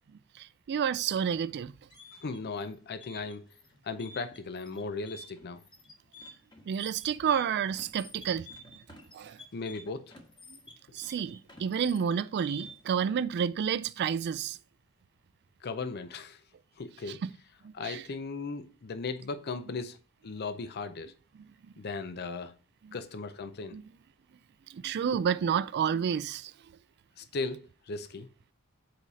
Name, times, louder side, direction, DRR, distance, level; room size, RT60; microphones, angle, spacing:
voice 1, 0.4-1.7 6.7-8.5 9.1-9.4 10.9-14.6 17.1-17.3 17.6-18.0 22.8-23.0 23.7-23.8 24.7-26.5, right 7 dB, 50° right, 0.3 m, -30 dB
sound 1, 1.7-13.0, left 1 dB, 20° left, 1.3 m, -50 dB
voice 2, 2.2-3.4 3.8-5.6 9.5-10.2 15.6-16.4 16.8-17.2 17.7-20.0 20.2-21.1 21.8-22.5 22.9-23.8 27.2-28.3, left 4 dB, 50° left, 0.5 m, -37 dB
7.7 x 4.8 x 4.1 m
head